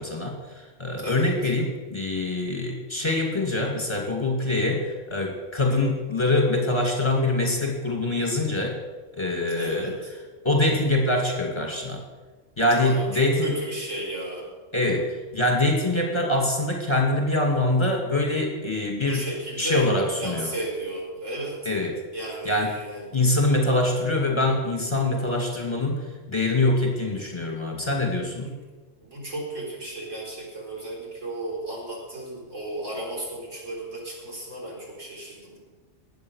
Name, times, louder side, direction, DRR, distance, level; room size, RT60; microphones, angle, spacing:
voice 1, 0.0-8.8 9.1-9.9 10.4-12.0 12.6-13.5 14.7-19.3 19.6-20.5 21.6-22.0 22.4-22.7 23.1-28.5, left 2 dB, 20° left, 0 dB, 2.5 m, -24 dB
voice 2, 1.0-1.4 5.7-5.9 9.6-10.1 12.7-13.0 13.4-14.5 19.1-21.7 22.1-23.0 28.4-28.6 29.0-35.6, right 1 dB, 80° right, -3 dB, 4.6 m, -34 dB
20.5 x 7.9 x 6.4 m, 1.3 s
omnidirectional pair, 1.3 m